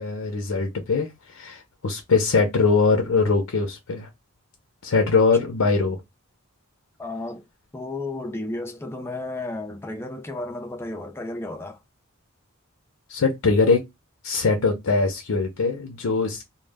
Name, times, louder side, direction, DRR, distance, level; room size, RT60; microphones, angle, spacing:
voice 1, 0.0-4.1 4.8-6.0 13.1-13.8 14.2-16.5, left 4 dB, 70° left, 0.5 m, -22 dB
voice 2, 7.0-7.4 7.7-11.8, left 2 dB, 10° left, 0.3 m, -33 dB
2.1 x 2.1 x 3.3 m
head